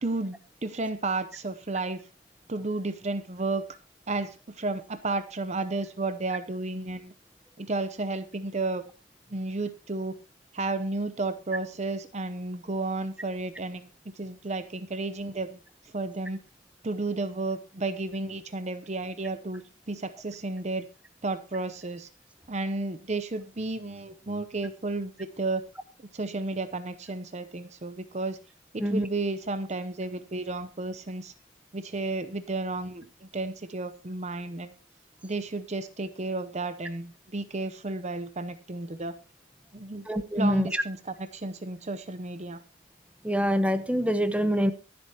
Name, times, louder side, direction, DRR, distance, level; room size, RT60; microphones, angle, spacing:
voice 1, 0.0-2.0 2.5-3.7 4.1-7.1 7.6-8.8 9.3-10.2 10.5-13.9 14.2-16.4 16.8-20.9 21.2-22.1 22.5-25.6 26.1-28.4 28.7-31.3 31.7-34.8 35.2-39.1 39.7-40.0 40.4-42.6, right 2 dB, 35° right, 12 dB, 0.7 m, -32 dB
voice 2, 40.1-40.8 43.2-44.7, equal, 5° right, 11 dB, 0.9 m, -25 dB
23.5 x 7.9 x 2.8 m, 0.31 s
head